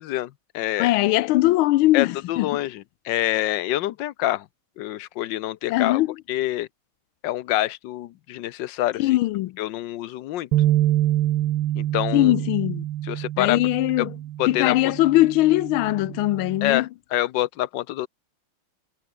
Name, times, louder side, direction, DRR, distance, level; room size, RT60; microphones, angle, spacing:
voice 1, 0.0-0.9 1.9-4.5 4.8-6.0 6.3-6.7 7.2-9.1 9.6-10.5 11.8-12.3 13.0-13.6 14.0-14.1 14.4-14.9 16.6-18.1, left 14 dB, 70° left, 1.3 m, -26 dB
voice 2, 0.8-2.5 5.7-6.1 9.0-9.6 12.1-12.8 13.4-14.1 14.5-16.9, left 17 dB, 85° left, 1.5 m, -20 dB
sound 1, 10.5-16.8, right 13 dB, 85° right, 1.7 m, -26 dB
omnidirectional pair, 2.2 m